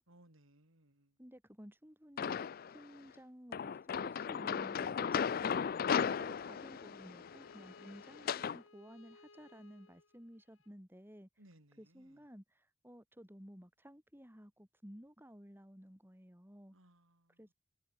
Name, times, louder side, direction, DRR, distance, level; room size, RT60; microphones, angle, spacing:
voice 1, 0.1-1.2 11.4-12.2 16.7-17.4, right 1 dB, 70° right, 5.9 m, -65 dB
voice 2, 1.2-2.4 2.7-11.3 11.8-16.8 17.4-17.5, equal, 10° right, 4.4 m, -55 dB
sound 1, 2.2-2.8 3.5-8.6, left 7 dB, 45° left, 0.3 m, -36 dB
Bowed string instrument, 5.7-10.7, left 3 dB, 70° left, 3.6 m, -62 dB
head